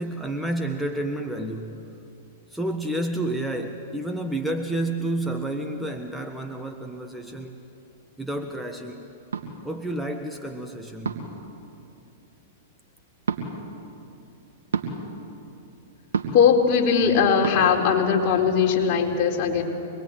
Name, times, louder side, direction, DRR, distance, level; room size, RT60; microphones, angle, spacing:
voice 1, 0.0-1.8 2.5-7.6 8.2-9.1 9.6-11.3, right 1 dB, ahead, 3 dB, 1.4 m, -30 dB
sound 1, 9.3-9.5 11.0-11.4 13.2-13.4 14.7-14.9 16.1-16.5 17.4-17.6, right 6 dB, 80° right, 2.8 m, -27 dB
voice 2, 16.3-19.6, left 6 dB, 45° left, -1 dB, 4.3 m, -20 dB
26.0 x 21.5 x 9.0 m, 2.7 s
hypercardioid pair, 110°, 0 cm